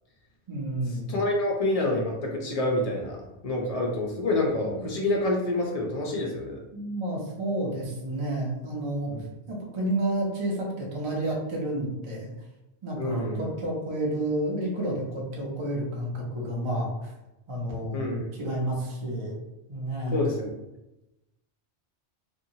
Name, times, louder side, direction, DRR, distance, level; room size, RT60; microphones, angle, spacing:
voice 1, 0.5-1.1 4.6-4.9 6.7-9.1 9.5-12.3 12.8-17.1 17.5-19.4 19.7-20.2, right 1 dB, 40° right, -2 dB, 0.5 m, -30 dB
voice 2, 1.1-3.2 3.4-6.6 9.1-9.2 13.0-13.4 17.9-18.3 20.1-20.5, left 2 dB, 50° left, -1 dB, 0.4 m, -27 dB
2.8 x 2.2 x 2.7 m, 0.96 s
omnidirectional pair, 1.3 m